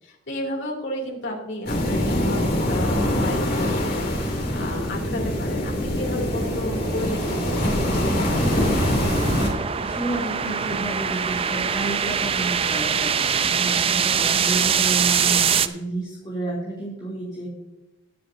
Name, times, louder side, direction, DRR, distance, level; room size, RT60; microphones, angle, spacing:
voice 1, 0.0-8.5, left 1 dB, 65° left, -1 dB, 3.0 m, -33 dB
sound 1, 1.7-9.5, left 1 dB, 50° left, 2.9 m, -24 dB
sound 2, 2.3-15.7, right 7 dB, 30° right, 0.5 m, -25 dB
voice 2, 9.8-17.5, right 2 dB, 25° left, -8 dB, 3.1 m, -31 dB
21.0 x 7.6 x 2.7 m, 1.0 s
head